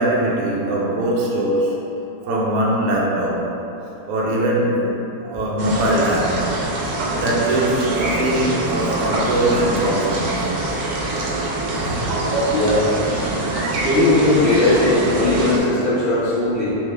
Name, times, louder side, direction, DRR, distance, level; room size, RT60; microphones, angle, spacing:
voice 1, 0.0-1.9 2.2-3.5 4.1-6.5 7.1-10.5 11.7-12.2 14.7-14.8, right 1 dB, 70° right, -4 dB, 1.0 m, -21 dB
sound 1, 5.6-15.6, right 2 dB, 85° right, 1.2 m, -24 dB
voice 2, 12.5-13.0 13.7-16.7, left 2 dB, 45° left, -11 dB, 1.3 m, -18 dB
3.4 x 3.2 x 3.2 m, 2.9 s
omnidirectional pair, 1.7 m